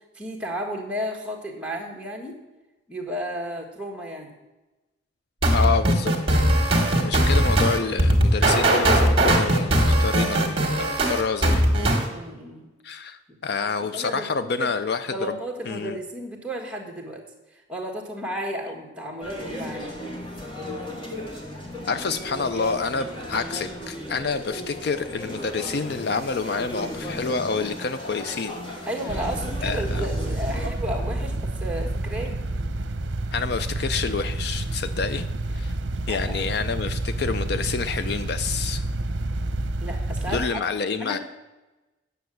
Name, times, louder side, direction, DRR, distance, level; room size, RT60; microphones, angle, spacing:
voice 1, 0.1-2.4 2.9-4.3 12.1-12.7 13.3-13.4 13.6-14.3 14.6-14.7 15.0-17.2 17.5-19.9 28.9-32.4 36.1-36.4 39.8-40.7 41.0-41.2, equal, 5° right, 0 dB, 1.6 m, -33 dB
sound 1, 5.4-12.1, right 1 dB, 30° right, 1.8 m, -19 dB
voice 2, 5.5-6.4 7.0-11.7 12.8-15.4 15.7-16.0 21.9-28.5 29.6-30.0 33.3-35.3 35.5-35.7 36.1-38.8 40.3-41.2, left 5 dB, 55° left, 11 dB, 0.4 m, -28 dB
sound 2, 19.2-30.7, equal, 25° left, 1.7 m, -35 dB
sound 3, 29.1-40.5, right 2 dB, 65° right, 0.7 m, -29 dB
9.3 x 6.9 x 7.6 m, 1.1 s
head